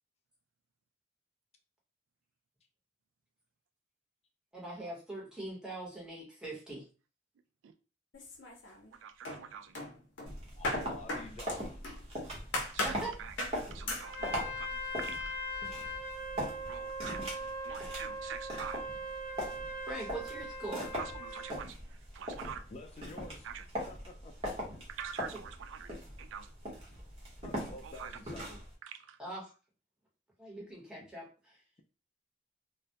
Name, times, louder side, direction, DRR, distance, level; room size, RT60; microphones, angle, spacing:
voice 1, 4.5-6.9 12.8-13.1 19.9-20.9 25.3-25.4 29.2-29.5 30.4-31.6, right 2 dB, 5° right, -4 dB, 0.9 m, -42 dB
sound 1, 8.1-8.9 9.2-12.0 12.5-13.0 13.4-13.6 13.9-14.1, left 2 dB, 80° left, 0.6 m, -37 dB
voice 2, 9.0-9.6 12.7-13.4 13.7-15.4 16.7-17.3 17.6-18.8 20.9-22.6 23.4-23.6 24.9-26.5 27.8-28.1 28.8-29.2, right 8 dB, 90° right, 9 dB, 0.3 m, -45 dB
sound 2, 10.3-28.7, equal, 35° right, 0.8 m, -41 dB
voice 3, 10.6-11.8 22.7-23.5 23.9-24.3 27.4-28.6, left 2 dB, 35° left, 3 dB, 0.3 m, -49 dB
Trumpet, 14.0-21.6, equal, 65° right, 1.0 m, -40 dB
2.1 x 2.1 x 2.7 m, 0.34 s
head